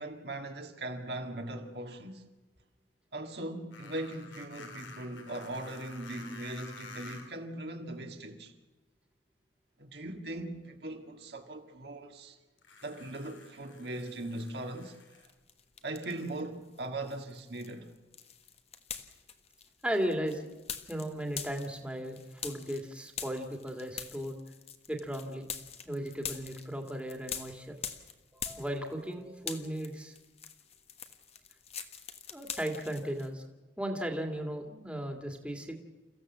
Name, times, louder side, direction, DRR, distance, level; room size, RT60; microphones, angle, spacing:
voice 1, 0.0-2.2 3.1-8.5 9.8-12.4 12.8-15.3 15.8-17.9, right 1 dB, 60° right, 1.9 m, -40 dB
sound 1, 3.7-7.4 8.5-8.6 12.6-15.3, left 4 dB, 80° left, 3.3 m, -50 dB
sound 2, 15.3-16.4 16.7-29.1 29.4-33.3, left 7 dB, 35° left, 1.4 m, -44 dB
voice 2, 19.8-20.5 20.9-24.4 24.9-25.5 25.8-27.8 28.3-30.1 32.3-33.4 33.8-35.8, equal, 5° right, 2.2 m, -36 dB
29.5 x 15.5 x 7.4 m
head